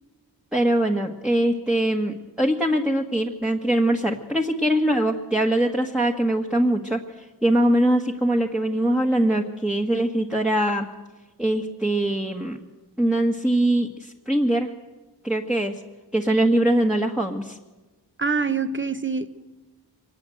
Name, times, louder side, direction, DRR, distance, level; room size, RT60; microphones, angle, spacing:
voice 1, 0.5-10.9 11.4-12.6 13.0-14.7 15.2-15.7 16.1-17.6, right 1 dB, ahead, 1.6 m, -22 dB
voice 2, 18.2-19.3, right 4 dB, 25° right, 1.2 m, -25 dB
24.5 x 19.5 x 7.9 m
wide cardioid pair, 70°, 43 cm